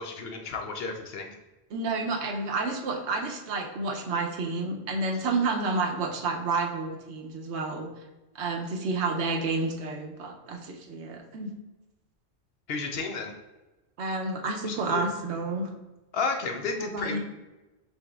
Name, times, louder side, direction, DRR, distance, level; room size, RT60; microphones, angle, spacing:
voice 1, 0.0-1.3 12.7-13.3 14.7-15.0 16.1-17.2, left 4 dB, 65° left, 4 dB, 0.8 m, -32 dB
voice 2, 1.7-7.9 8.3-11.5 14.0-15.7 16.8-17.2, right 3 dB, 85° right, 3 dB, 1.0 m, -30 dB
5.4 x 4.1 x 2.3 m, 1.1 s
omnidirectional pair, 1.1 m